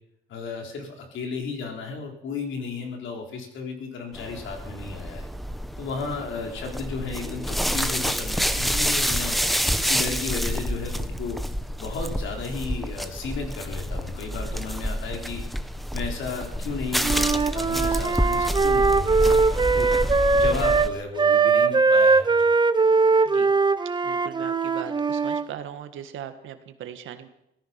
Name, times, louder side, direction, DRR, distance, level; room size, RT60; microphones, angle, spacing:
voice 1, 0.3-5.3 5.8-11.4 11.8-15.4 15.9-19.9 20.3-22.5, left 4 dB, 75° left, 3 dB, 3.8 m, -34 dB
sound 1, 4.1-20.9, equal, ahead, 1.0 m, -28 dB
Wind instrument woodwind instrument, 17.0-20.9 21.2-25.5, right 4 dB, 25° right, 0.7 m, -21 dB
voice 2, 24.0-27.3, right 9 dB, 80° right, 8 dB, 1.7 m, -39 dB
17.5 x 14.0 x 5.8 m, 0.83 s
cardioid pair, 90°, 20 cm